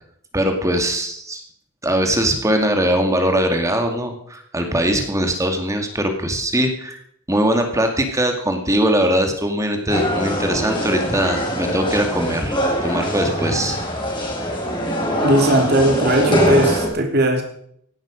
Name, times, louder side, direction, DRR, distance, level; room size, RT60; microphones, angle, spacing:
voice 1, 0.3-1.4 1.8-7.0 7.3-13.8, right 1 dB, 15° right, 5 dB, 2.1 m, -21 dB
sound 1, 9.9-16.9, equal, 25° left, 4.7 m, -22 dB
voice 2, 15.2-17.4, right 1 dB, 50° right, 4 dB, 3.1 m, -18 dB
17.0 x 11.5 x 5.1 m, 0.67 s
head